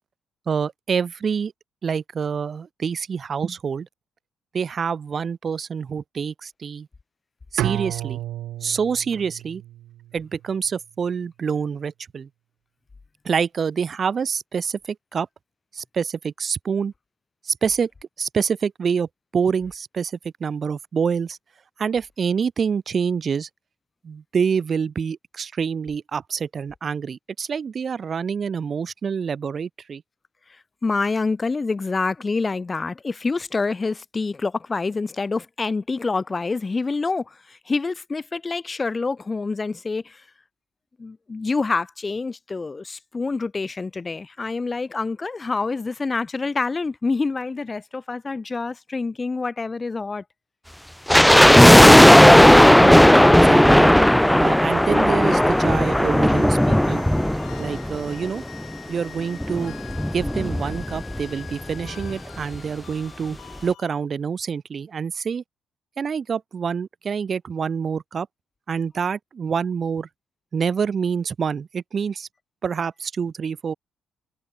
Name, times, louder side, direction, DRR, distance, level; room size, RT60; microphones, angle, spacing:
voice 1, 0.5-1.5 1.8-3.9 4.5-6.9 7.5-8.2 8.6-9.6 10.1-12.3 13.2-15.3 15.7-16.9 17.4-17.9 18.2-20.1 20.4-21.4 21.8-23.5 24.0-30.0 52.8-53.9 54.4-57.0 57.6-58.4 58.9-59.7 60.1-65.4 66.0-68.3 68.7-70.1 70.5-72.3 72.6-73.7, right 6 dB, 45° right, 0.7 m, -26 dB
Bowed string instrument, 7.6-10.6, right 14 dB, 85° right, 0.4 m, -31 dB
voice 2, 30.8-40.2 41.0-50.2, left 4 dB, 25° left, 2.2 m, -27 dB
sound 1, 51.1-58.4 58.6-58.7 59.4-61.2 61.5-61.6 61.8-62.1 62.5-62.6, left 1 dB, 5° left, 0.4 m, -14 dB
sound 2, 55.2-63.9, left 13 dB, 80° left, 1.4 m, -45 dB
cardioid pair, 90°, 0 cm